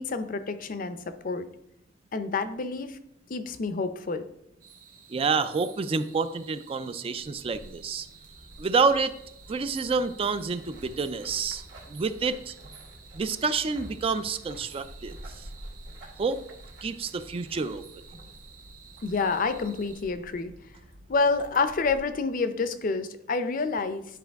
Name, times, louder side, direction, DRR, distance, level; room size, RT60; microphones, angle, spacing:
voice 1, 0.0-1.5 2.1-3.0 3.3-4.2 19.0-20.5 21.1-24.0, left 4 dB, 50° left, 11 dB, 0.5 m, -28 dB
sound 1, 4.6-20.0, right 7 dB, 45° right, 1.5 m, -52 dB
voice 2, 5.1-8.1 8.6-9.1 9.5-11.6 11.9-12.5 13.1-15.2 16.2-16.4 16.8-17.8, right 4 dB, 30° right, 12 dB, 0.4 m, -28 dB
sound 2, 7.1-22.1, equal, 70° right, 1.2 m, -50 dB
sound 3, 10.2-18.4, right 1 dB, 90° right, 2.1 m, -52 dB
10.0 x 4.6 x 3.5 m, 0.80 s
head